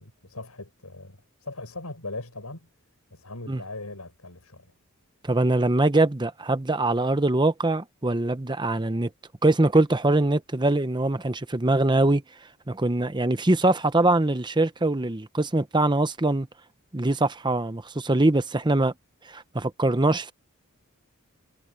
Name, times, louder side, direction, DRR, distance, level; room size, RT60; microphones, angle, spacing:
voice 1, 0.0-2.7 3.1-4.7, left 2 dB, 90° left, 6.9 m, -39 dB
voice 2, 5.2-9.1 9.4-12.2 12.7-16.5 16.9-18.9 19.3-20.3, right 2 dB, 20° right, 0.9 m, -23 dB
head